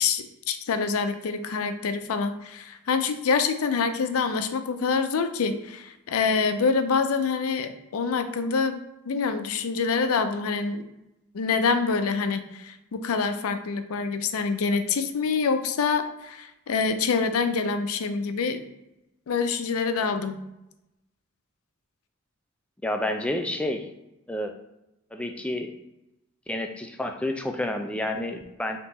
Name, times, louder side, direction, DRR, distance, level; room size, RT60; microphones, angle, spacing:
voice 1, 0.0-10.8 11.3-18.6 19.3-20.4, left 5 dB, 80° left, 9 dB, 0.4 m, -26 dB
voice 2, 22.8-23.9 24.3-24.5 25.1-25.7 26.5-28.8, left 1 dB, 5° left, 5 dB, 0.3 m, -29 dB
3.6 x 2.9 x 4.1 m, 0.90 s
head